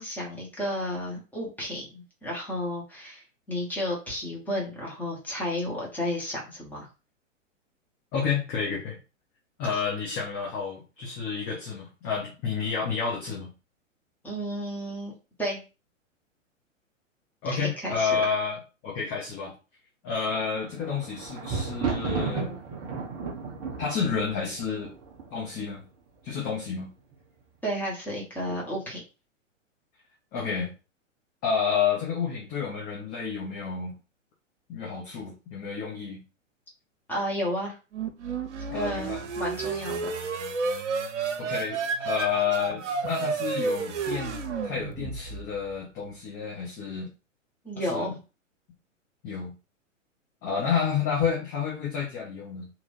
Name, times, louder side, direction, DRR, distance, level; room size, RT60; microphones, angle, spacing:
voice 1, 0.0-6.9 14.2-15.1 15.4-15.6 17.5-18.2 27.6-29.0 37.1-37.8 38.7-40.2 47.6-48.2, equal, 5° left, -3 dB, 1.1 m, -32 dB
voice 2, 8.1-9.0 9.6-13.5 17.4-18.6 18.8-19.5 20.0-22.6 23.8-24.9 25.3-25.8 26.2-26.9 30.3-30.7 31.4-34.0 34.7-36.2 38.7-39.2 41.4-47.1 47.9-48.2 49.2-49.5 50.4-52.7, left 6 dB, 25° left, -3 dB, 0.9 m, -30 dB
Thunder, 20.5-25.6 26.3-26.8 27.1-27.2, right 4 dB, 10° right, 0.4 m, -33 dB
sound 1, 37.9-45.6, right 4 dB, 65° right, 0.8 m, -31 dB
3.0 x 2.6 x 4.0 m, 0.31 s
figure-of-eight pair, 110°, 39 cm